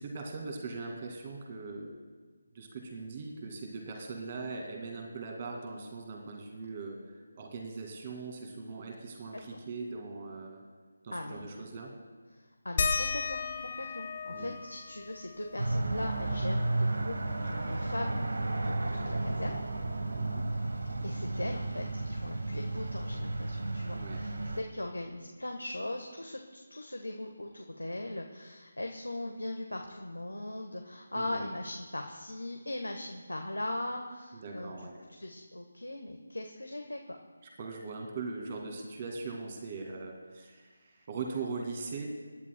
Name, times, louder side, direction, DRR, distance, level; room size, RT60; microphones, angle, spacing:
voice 1, 0.0-1.9 2.5-10.6 11.0-11.9 14.3-14.5 20.2-20.4 23.9-24.2 31.1-31.5 34.3-35.0 37.6-42.1, right 4 dB, 30° right, 1 dB, 2.2 m, -40 dB
voice 2, 11.1-11.5 12.3-17.2 17.4-19.6 21.0-34.9 35.2-37.2, left 1 dB, 75° left, 3 dB, 1.3 m, -39 dB
sound 1, 12.8-17.9 18.3-18.4 18.7-20.5 21.7-21.8 22.5-22.6, left 4 dB, 35° left, 1.0 m, -37 dB
sound 2, 15.6-24.6, right 2 dB, 60° right, 1.2 m, -33 dB
26.5 x 11.0 x 2.2 m, 1.5 s
figure-of-eight pair, 155°, 0 cm